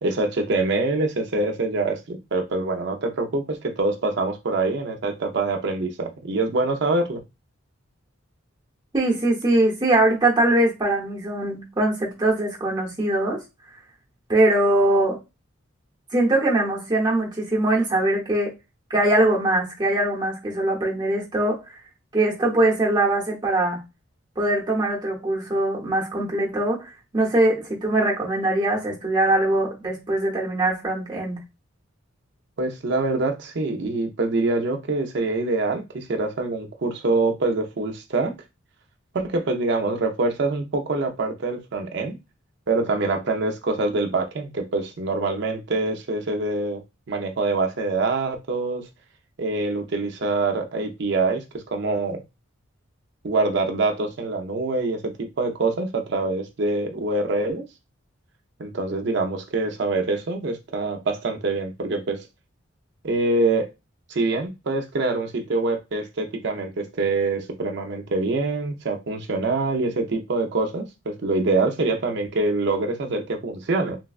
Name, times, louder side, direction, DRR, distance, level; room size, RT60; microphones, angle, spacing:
voice 1, 0.0-7.2 32.6-38.3 39.1-42.2 42.7-46.8 47.1-48.9 49.4-51.4 51.7-52.2 53.2-57.6 58.6-62.3 63.0-63.7 64.1-74.0, right 3 dB, 55° right, 0.5 m, -25 dB
voice 2, 8.9-13.4 14.3-15.2 16.1-18.5 18.9-21.6 22.1-23.8 24.4-31.4, right 1 dB, 20° right, 0.8 m, -22 dB
3.2 x 2.2 x 2.3 m
head